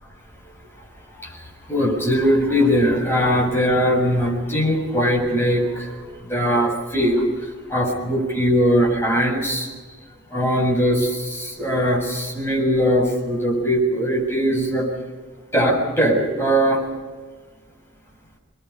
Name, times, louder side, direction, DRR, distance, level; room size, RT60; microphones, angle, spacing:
voice 1, 1.2-9.7 10.3-14.9 15.5-16.8, equal, 10° left, -3 dB, 7.5 m, -20 dB
27.5 x 21.5 x 5.7 m, 1.4 s
head